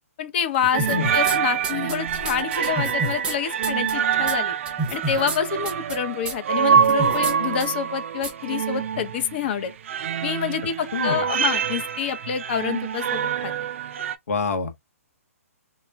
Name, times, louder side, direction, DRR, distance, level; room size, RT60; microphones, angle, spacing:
voice 1, 0.2-4.5 4.9-9.7 10.2-13.5, left 8 dB, 45° left, 0.6 m, -27 dB
sound 1, 0.7-14.2, right 7 dB, 55° right, 0.4 m, -25 dB
sound 2, 0.8-1.4 1.6-3.3 3.6-3.9 4.3-4.4 4.7-5.4 5.7-6.0 6.3-6.4 6.8-7.3 7.6-7.7 8.2-8.3, right 2 dB, 10° right, 0.6 m, -29 dB
voice 2, 10.9-11.3 14.3-14.7, left 5 dB, 75° left, 0.9 m, -26 dB
2.3 x 2.1 x 3.3 m
hypercardioid pair, 145°, 8 cm